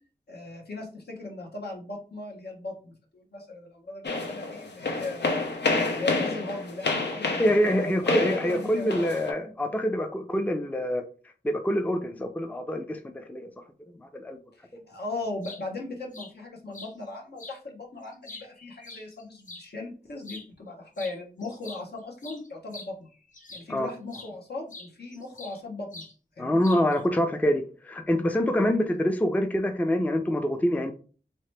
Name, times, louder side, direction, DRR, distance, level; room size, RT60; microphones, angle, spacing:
voice 1, 0.3-5.4 5.9-9.2 14.5-23.1 23.5-26.0 26.4-26.6, left 2 dB, 70° left, -1 dB, 1.0 m, -38 dB
sound 1, 4.0-9.3, left 3 dB, 90° left, 0.7 m, -29 dB
voice 2, 7.4-11.0 11.4-13.5 14.1-14.4 23.7-23.9 26.4-30.9, equal, 10° left, 6 dB, 0.4 m, -25 dB
sound 2, 15.2-15.6 16.1-16.3 16.7-16.9 17.4-17.6 18.0-19.7 20.2-20.5 21.0-21.2 21.4-23.7 24.1-24.3 24.7-25.6 25.9-26.1 26.6-27.0, left 2 dB, 50° left, 0.6 m, -44 dB
3.2 x 2.8 x 3.2 m, 0.39 s
wide cardioid pair, 70°, 17 cm